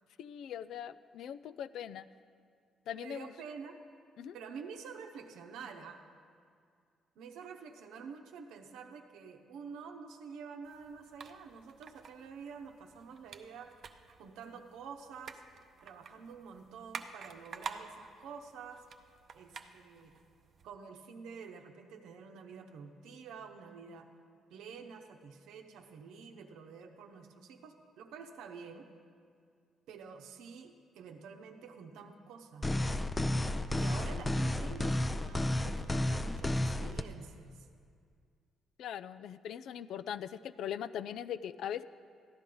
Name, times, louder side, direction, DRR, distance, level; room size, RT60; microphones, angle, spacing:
voice 1, 0.2-2.1 2.9-3.3 4.2-4.4 38.8-41.8, left 9 dB, 75° left, 15 dB, 0.3 m, -40 dB
voice 2, 3.0-3.8 4.3-6.0 7.2-13.7 14.2-15.4 15.8-18.8 19.3-20.1 20.6-24.1 24.5-28.9 29.9-33.1 33.7-37.7, right 6 dB, 90° right, 5 dB, 0.8 m, -48 dB
sound 1, 10.6-20.7, right 6 dB, 55° right, 0.6 m, -50 dB
sound 2, 32.6-37.0, left 1 dB, 20° left, 0.5 m, -32 dB
14.5 x 10.5 x 3.8 m, 2.2 s
cardioid pair, 90°, 0 cm